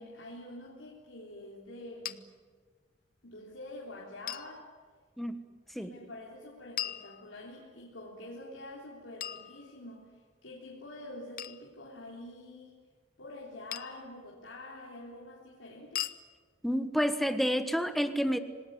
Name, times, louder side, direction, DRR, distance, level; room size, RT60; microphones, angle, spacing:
voice 1, 0.0-2.3 3.2-4.7 5.8-10.1 10.4-12.8 13.2-16.1, left 1 dB, 85° left, -4 dB, 3.7 m, -46 dB
sound 1, 2.1-2.2 4.3-4.5 6.8-7.7 9.2-10.1 11.4-11.7 13.7-14.1 16.0-16.2, left 12 dB, 50° left, 0.8 m, -39 dB
voice 2, 16.6-18.4, equal, ahead, 9 dB, 1.4 m, -29 dB
26.0 x 19.5 x 9.6 m, 1.5 s
head